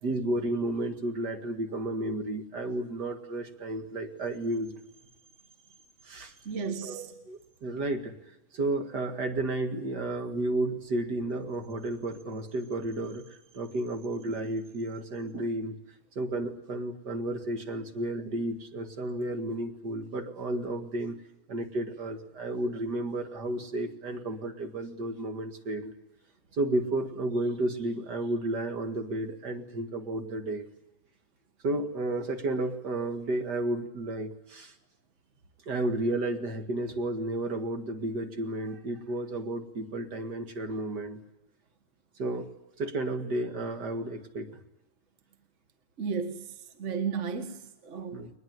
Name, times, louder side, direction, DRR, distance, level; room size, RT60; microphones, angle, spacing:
voice 1, 0.0-4.8 6.0-6.3 6.8-8.1 8.5-15.8 16.2-21.2 21.5-25.9 26.5-30.7 31.6-34.7 35.7-41.2 42.2-42.5 42.8-44.6 48.1-48.3, right 2 dB, 55° right, 6 dB, 2.5 m, -32 dB
voice 2, 6.5-7.1 46.0-48.3, right 5 dB, 40° right, 8 dB, 1.8 m, -34 dB
22.0 x 20.5 x 9.5 m, 0.94 s
omnidirectional pair, 2.2 m